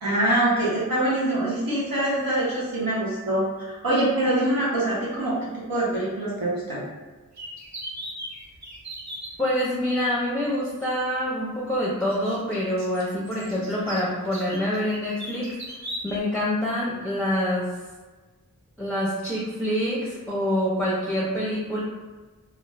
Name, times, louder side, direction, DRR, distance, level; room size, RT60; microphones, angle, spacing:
voice 1, 0.0-5.4 5.7-6.8, right 1 dB, 75° right, -8 dB, 1.0 m, -24 dB
sound 1, 7.4-9.3 10.8-10.9 12.1-16.2, equal, 55° right, 0.7 m, -38 dB
voice 2, 9.4-15.5 16.0-17.8 18.8-21.8, equal, 5° left, -6 dB, 0.6 m, -26 dB
2.5 x 2.4 x 3.1 m, 1.3 s
wide cardioid pair, 50°, 35 cm